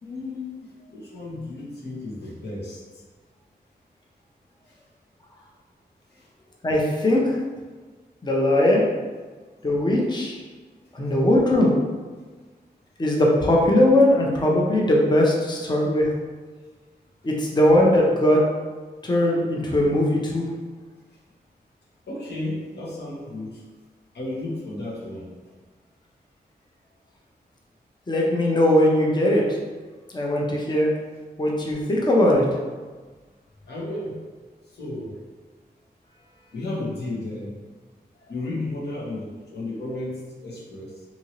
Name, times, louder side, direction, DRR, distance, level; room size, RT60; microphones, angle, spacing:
voice 1, 0.0-3.0 4.7-4.8 6.1-6.3 22.1-23.6 24.1-25.3 33.7-34.2 34.7-35.2 36.5-37.6 38.3-41.0, left 2 dB, 75° left, -6 dB, 1.1 m, -33 dB
voice 2, 6.6-7.4 8.2-8.9 9.6-10.4 10.9-11.7 13.0-16.1 17.2-18.4 19.0-20.5 28.1-29.4 30.1-30.9 31.4-32.4, left 1 dB, 25° left, -2 dB, 0.6 m, -19 dB
2.7 x 2.7 x 2.9 m, 1.4 s
cardioid pair, 50°, 17 cm